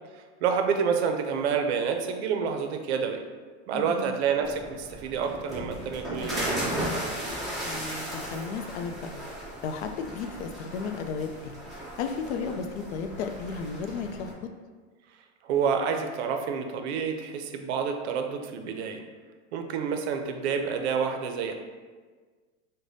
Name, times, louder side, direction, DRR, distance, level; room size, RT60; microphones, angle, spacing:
voice 1, 0.1-3.2 3.7-6.9 15.4-19.0 19.5-21.5, right 6 dB, 75° right, 5 dB, 0.5 m, -28 dB
voice 2, 3.7-4.2 7.6-9.2 9.6-11.5 12.0-14.5, left 5 dB, 85° left, 6 dB, 0.5 m, -34 dB
sound 1, 4.4-14.3, equal, ahead, 0.6 m, -36 dB
4.9 x 2.2 x 2.6 m, 1.5 s
supercardioid pair, 165°, 33 cm